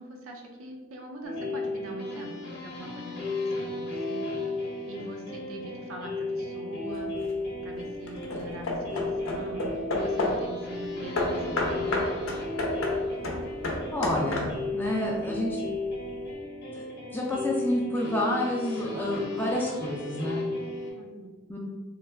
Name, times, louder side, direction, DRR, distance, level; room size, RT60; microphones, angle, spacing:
voice 1, 0.0-7.2 7.6-12.4 20.9-21.3, right 1 dB, 80° right, 1 dB, 0.5 m, -42 dB
sound 1, 1.2-20.9, left 2 dB, 50° left, 0.7 m, -34 dB
Hammer / Wood, 6.9-7.4 8.1-10.5 11.2-14.8, left 1 dB, 85° left, 0.6 m, -31 dB
voice 2, 13.9-15.6 16.7-16.9 17.1-20.4 21.5-21.6, left 1 dB, 10° left, -3 dB, 0.4 m, -29 dB
3.1 x 2.2 x 3.3 m, 1.3 s
head